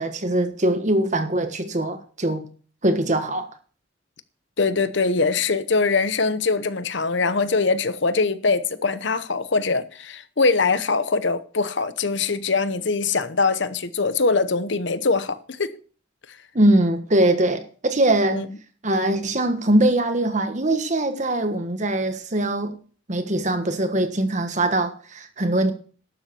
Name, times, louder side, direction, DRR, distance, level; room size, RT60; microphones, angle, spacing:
voice 1, 0.0-2.5 2.8-3.5 16.5-18.5 18.8-22.8 23.1-25.7, right 1 dB, 35° right, 1.3 m, -22 dB
voice 2, 4.6-15.8 18.3-18.5, left 4 dB, 60° left, 1.0 m, -22 dB
12.0 x 7.5 x 6.9 m
head